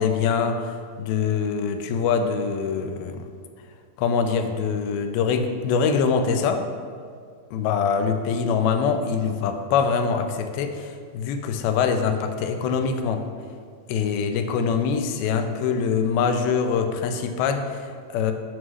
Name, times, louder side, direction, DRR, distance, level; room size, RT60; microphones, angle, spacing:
voice 1, 0.0-3.3 4.0-6.6 7.5-13.2 13.9-18.3, left 6 dB, 90° left, 6 dB, 2.4 m, -24 dB
7.5 x 3.1 x 6.1 m, 2.1 s
omnidirectional pair, 4.2 m